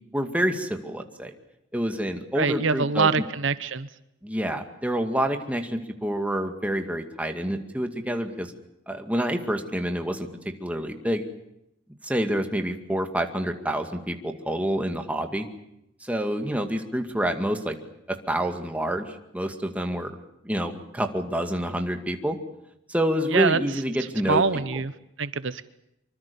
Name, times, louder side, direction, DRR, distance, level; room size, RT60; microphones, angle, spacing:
voice 1, 0.1-1.3 1.7-3.2 4.2-8.5 8.9-11.2 12.0-15.5 16.0-17.8 18.1-20.2 20.4-22.4 22.9-24.8, equal, 5° right, 5 dB, 2.2 m, -28 dB
voice 2, 2.4-3.9 23.3-23.6 24.2-24.9 25.2-25.6, right 4 dB, 70° right, 14 dB, 1.0 m, -24 dB
25.0 x 25.0 x 7.0 m, 0.83 s
head